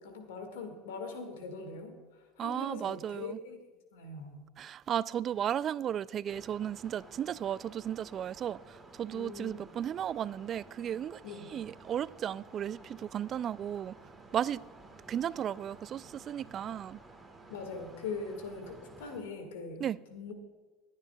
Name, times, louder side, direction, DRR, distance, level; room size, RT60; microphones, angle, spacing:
voice 1, 0.0-3.6 3.9-4.4 9.1-9.6 11.2-11.5 17.5-19.8 20.1-20.3, left 4 dB, 75° left, 1.8 m, -42 dB
voice 2, 2.4-3.4 4.6-11.2 11.5-13.9 14.3-14.6 15.1-17.0 19.8-20.0, right 9 dB, 40° right, 0.3 m, -35 dB
sound 1, 6.3-19.2, right 3 dB, 10° right, 2.3 m, -54 dB
26.0 x 9.7 x 2.3 m
hypercardioid pair, 80°, 0 cm